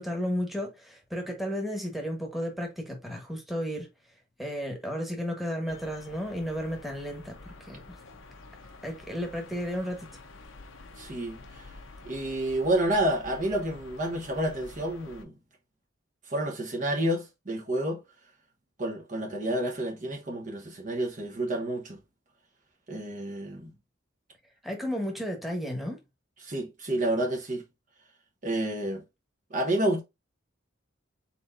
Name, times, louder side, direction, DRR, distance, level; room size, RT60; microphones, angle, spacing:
voice 1, 0.0-3.9 4.4-8.0 8.8-10.1 24.6-26.0, equal, ahead, 1.3 m, -33 dB
sound 1, 5.7-15.2, left 3 dB, 85° left, 0.9 m, -49 dB
voice 2, 11.0-11.7 12.0-15.3 16.3-18.0 18.8-22.0 22.9-23.7 26.4-27.6 28.4-29.0 29.5-30.0, right 1 dB, 40° right, 1.0 m, -29 dB
4.4 x 4.3 x 2.6 m
head